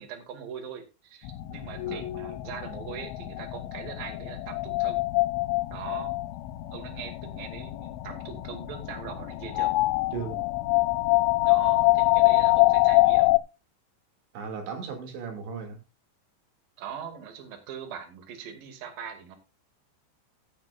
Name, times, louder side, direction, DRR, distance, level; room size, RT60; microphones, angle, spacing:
voice 1, 0.0-5.0 5.7-6.1 6.7-9.7 11.4-13.4 16.8-19.4, right 7 dB, 55° right, 3.5 m, -41 dB
sound 1, 1.3-13.4, left 21 dB, 85° left, 3.1 m, -25 dB
voice 2, 10.1-10.4 14.3-15.8, right 5 dB, 70° right, 4.5 m, -36 dB
15.0 x 10.5 x 2.4 m
omnidirectional pair, 5.4 m